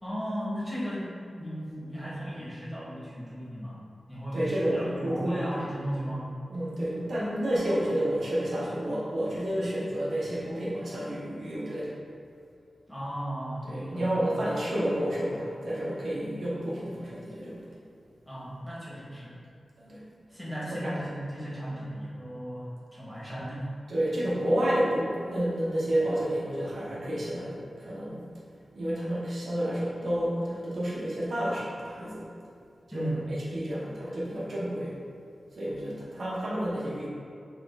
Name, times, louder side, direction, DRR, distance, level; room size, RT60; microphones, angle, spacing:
voice 1, 0.0-3.8 4.1-6.3 12.9-14.2 18.3-19.4 20.3-23.7 32.9-33.3, equal, 5° left, -8 dB, 1.3 m, -36 dB
voice 2, 4.3-5.9 6.5-12.0 13.6-17.7 19.8-20.0 20.7-21.0 23.9-28.2 28.7-32.2 32.9-34.9 35.5-37.1, right 1 dB, 70° right, -7 dB, 1.0 m, -30 dB
5.9 x 2.5 x 3.4 m, 2.4 s
wide cardioid pair, 115°, 0 cm